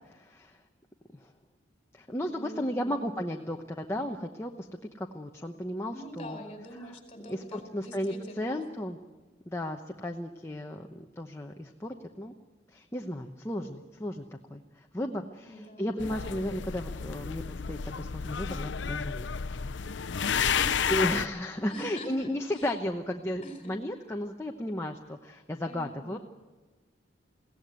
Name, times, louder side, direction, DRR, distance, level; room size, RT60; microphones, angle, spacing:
voice 1, 0.1-0.6 1.1-1.3 1.9-4.7 5.0-6.4 7.3-9.0 9.5-12.3 12.7-19.3 20.9-26.2, left 1 dB, 15° left, 2 dB, 1.0 m, -34 dB
voice 2, 2.3-3.1 5.9-8.7 15.4-16.1 20.2-20.9 21.7-22.7 23.4-23.7 25.7-26.2, equal, 30° left, 5 dB, 4.6 m, -44 dB
sound 1, 16.0-21.3, left 7 dB, 75° left, 0.6 m, -31 dB
22.5 x 17.0 x 9.4 m, 1.2 s
head